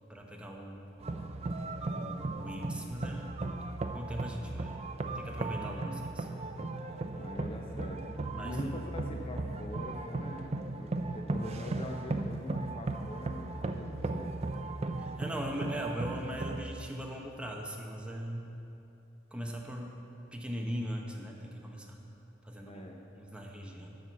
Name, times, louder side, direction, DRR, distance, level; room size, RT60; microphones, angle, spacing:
voice 1, 0.1-0.8 1.9-3.3 3.9-4.8 5.1-6.3 8.4-8.6 15.0-18.5 19.3-20.0 20.3-22.0 22.4-22.8 23.1-24.0, equal, 5° right, 0 dB, 0.8 m, -40 dB
sound 1, 1.0-16.6, right 2 dB, 35° right, 0.4 m, -36 dB
voice 2, 5.6-6.0 7.2-14.3 22.6-23.0, left 1 dB, 30° left, 2 dB, 0.6 m, -43 dB
10.5 x 4.3 x 6.9 m, 2.8 s
head